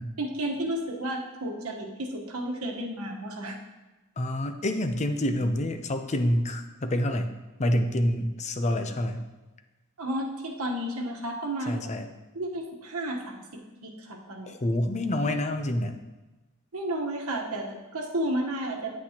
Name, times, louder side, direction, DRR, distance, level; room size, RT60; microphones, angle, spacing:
voice 1, 0.2-3.6 10.0-11.9 12.3-14.5 16.7-19.0, right 1 dB, 75° right, 1 dB, 1.3 m, -32 dB
voice 2, 4.2-7.3 7.6-9.2 11.7-12.1 14.5-16.0, left 1 dB, 30° left, 6 dB, 0.6 m, -27 dB
9.5 x 8.4 x 2.9 m, 1.1 s
head